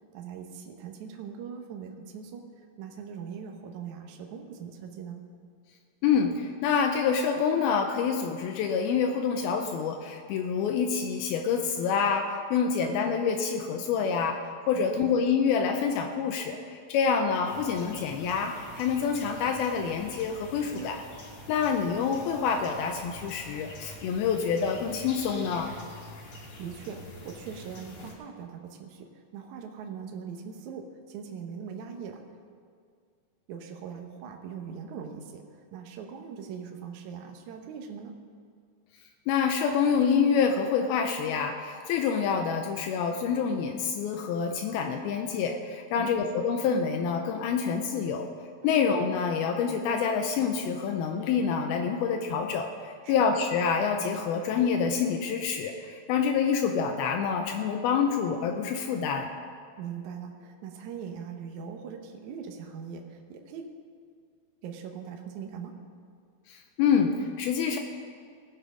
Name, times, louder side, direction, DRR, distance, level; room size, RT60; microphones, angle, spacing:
voice 1, 0.1-2.4 2.8-5.2 14.7-15.1 20.7-20.9 26.6-32.2 33.5-38.1 45.9-46.3 48.6-48.8 53.0-53.2 59.8-63.7 64.6-65.8, right 7 dB, 70° right, 3 dB, 1.9 m, -41 dB
voice 2, 6.0-14.4 14.7-21.0 21.5-25.7 39.3-48.3 48.6-52.7 53.1-59.3 66.5-67.8, left 6 dB, 85° left, 4 dB, 2.5 m, -27 dB
sound 1, 17.4-28.1, left 1 dB, 55° left, 1.6 m, -46 dB
18.5 x 6.8 x 5.0 m, 2.2 s
omnidirectional pair, 4.5 m